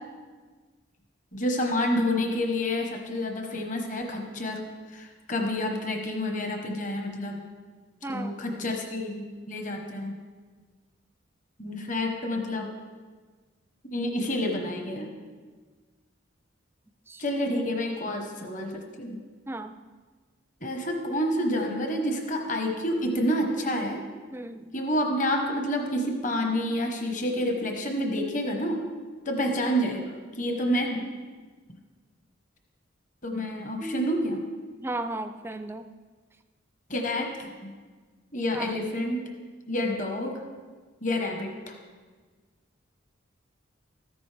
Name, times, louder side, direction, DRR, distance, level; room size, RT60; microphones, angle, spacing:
voice 1, 1.3-7.4 8.1-10.1 11.6-12.7 13.9-15.1 17.2-19.2 20.6-24.0 24.7-28.8 29.2-31.0 33.2-34.4 36.9-37.7 38.3-39.3 39.7-40.4 41.0-41.7, left 1 dB, 40° left, 2 dB, 1.1 m, -29 dB
voice 2, 8.0-8.4 17.1-17.2 19.5-19.7 24.3-24.7 33.8-34.1 34.8-35.9 38.5-38.7, right 1 dB, 10° right, 9 dB, 0.3 m, -35 dB
13.5 x 10.5 x 3.4 m, 1.4 s
head